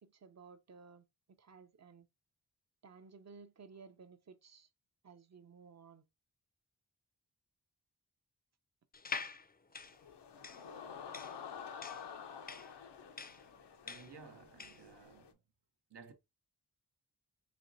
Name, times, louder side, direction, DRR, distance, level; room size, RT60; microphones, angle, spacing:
voice 1, 0.0-1.0 1.4-2.1 2.8-4.7 5.0-6.1, right 5 dB, 45° right, 0.5 m, -56 dB
sound 1, 8.9-14.9, left 4 dB, 25° left, 0.4 m, -46 dB
sound 2, 9.8-15.3, left 7 dB, 85° left, 0.6 m, -50 dB
voice 2, 13.8-15.4 15.9-16.1, right 5 dB, 85° right, 0.8 m, -56 dB
4.1 x 3.0 x 2.5 m
wide cardioid pair, 60°, 40 cm